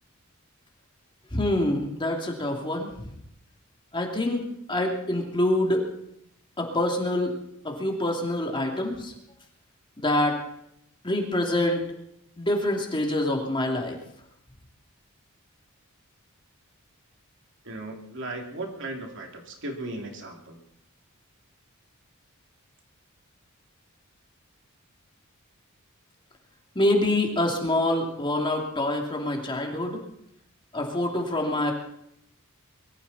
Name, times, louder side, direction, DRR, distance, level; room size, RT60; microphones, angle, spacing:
voice 1, 1.3-2.9 3.9-4.4 4.7-5.9 6.6-7.3 7.6-9.1 10.0-10.4 11.0-11.8 12.4-14.0 26.7-30.0 30.7-31.7, left 1 dB, 25° left, 1 dB, 2.8 m, -26 dB
voice 2, 17.6-20.6, right 2 dB, 60° right, 2 dB, 2.9 m, -36 dB
22.5 x 14.0 x 4.2 m, 0.76 s
head